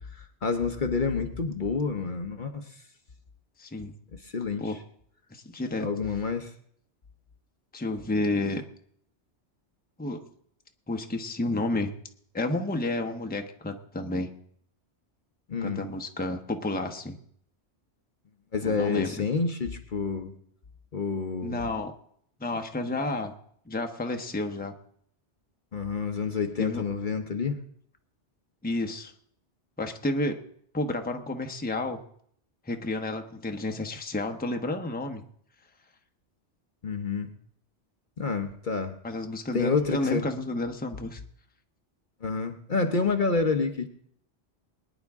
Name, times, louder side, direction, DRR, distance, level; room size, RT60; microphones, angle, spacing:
voice 1, 0.1-2.7 4.2-4.7 5.8-6.5 15.5-15.9 18.5-20.3 20.9-21.7 25.7-27.6 36.8-37.3 38.2-39.0 39.5-40.3 42.2-43.9, left 4 dB, 45° left, 6 dB, 1.0 m, -28 dB
voice 2, 3.6-3.9 4.6-4.8 5.3-5.9 7.7-8.6 10.0-10.3 10.9-11.9 12.3-14.3 15.6-17.2 18.6-19.2 21.4-21.9 22.4-23.3 23.7-24.7 26.6-26.8 28.6-29.1 29.8-30.4 30.7-32.0 32.7-35.2 38.2-38.4 39.0-41.2, left 2 dB, 10° left, 5 dB, 0.9 m, -31 dB
22.5 x 10.0 x 3.6 m, 0.66 s
omnidirectional pair, 1.2 m